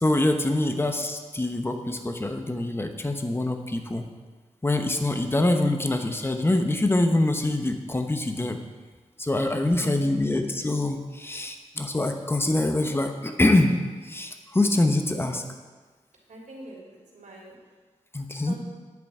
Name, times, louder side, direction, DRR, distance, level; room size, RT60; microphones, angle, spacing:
voice 1, 0.0-4.0 4.6-8.6 9.2-13.8 14.0-15.4 18.1-18.5, left 2 dB, 20° left, 6 dB, 1.0 m, -24 dB
voice 2, 9.5-10.2 15.1-15.3 16.3-16.8 17.1-17.6 18.5-18.6, right 1 dB, 80° right, -4 dB, 3.3 m, -43 dB
10.5 x 9.0 x 4.9 m, 1.4 s
wide cardioid pair, 120°, 13 cm